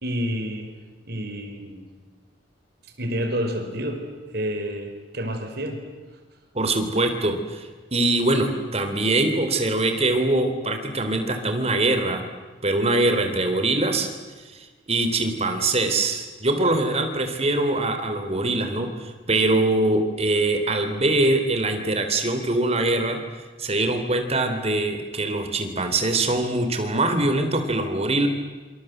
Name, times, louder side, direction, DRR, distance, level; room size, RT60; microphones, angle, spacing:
voice 1, 0.0-0.7 1.1-1.8 3.0-4.0 4.3-5.8, equal, 55° right, 5 dB, 4.8 m, -29 dB
voice 2, 6.5-12.3 12.6-14.1 14.9-23.2 23.6-28.3, right 2 dB, 35° right, 6 dB, 3.6 m, -23 dB
27.0 x 26.0 x 8.1 m, 1.4 s
head